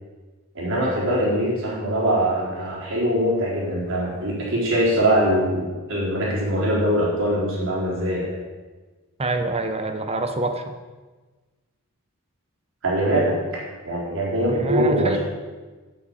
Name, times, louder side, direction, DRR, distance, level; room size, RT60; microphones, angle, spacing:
voice 1, 0.5-8.3 12.8-13.4 13.8-15.2, right 1 dB, 60° right, -4 dB, 3.9 m, -22 dB
voice 2, 9.2-10.7 14.5-15.2, right 2 dB, 25° right, 7 dB, 0.9 m, -26 dB
9.0 x 7.9 x 7.1 m, 1.3 s
head